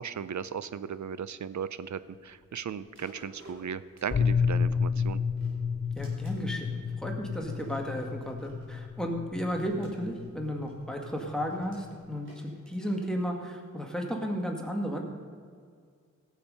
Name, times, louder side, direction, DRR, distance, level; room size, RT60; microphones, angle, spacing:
voice 1, 0.0-5.2, right 7 dB, 70° right, 15 dB, 0.6 m, -37 dB
sound 1, 2.9-4.8 5.2-6.7 7.3-8.9 9.5-13.7 14.2-14.3, right 1 dB, 40° right, 3.7 m, -55 dB
sound 2, 4.1-12.1, left 6 dB, 35° left, 0.5 m, -31 dB
voice 2, 5.9-15.0, equal, ahead, 1 dB, 1.9 m, -34 dB
17.0 x 7.2 x 5.4 m, 2.1 s
wide cardioid pair, 70°, 30 cm